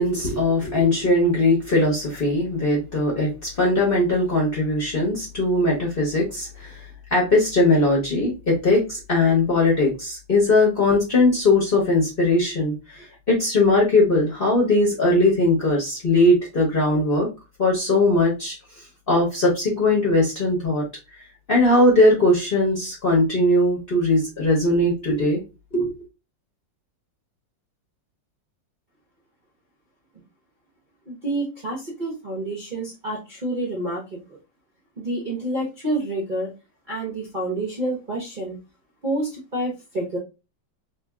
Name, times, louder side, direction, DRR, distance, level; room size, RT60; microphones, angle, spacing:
voice 1, 0.0-6.8 7.1-13.0 13.3-17.3 17.6-18.6 19.1-20.8 21.5-25.4 25.7-25.9, left 2 dB, 40° left, -2 dB, 0.9 m, -20 dB
voice 2, 31.1-34.2 35.0-36.5 36.9-38.6 39.0-40.2, right 1 dB, 45° right, -3 dB, 0.6 m, -28 dB
2.9 x 2.7 x 3.4 m, 0.28 s
omnidirectional pair, 2.0 m